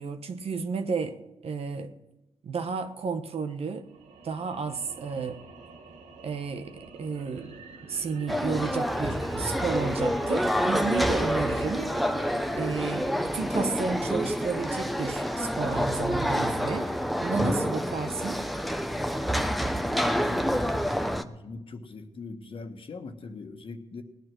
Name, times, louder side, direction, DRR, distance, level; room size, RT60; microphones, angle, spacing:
voice 1, 0.0-1.9 2.4-3.9 4.2-5.4 6.2-7.6 7.9-11.9 12.5-16.9 17.2-18.4, right 5 dB, 60° right, 9 dB, 1.2 m, -32 dB
sound 1, 3.8-14.1, right 3 dB, 85° right, 1.8 m, -45 dB
sound 2, 8.3-21.2, equal, ahead, 0.9 m, -28 dB
voice 2, 20.0-20.9 21.2-24.0, left 3 dB, 50° left, 6 dB, 1.5 m, -41 dB
18.0 x 9.5 x 6.2 m, 0.95 s
cardioid pair, 65°, 11 cm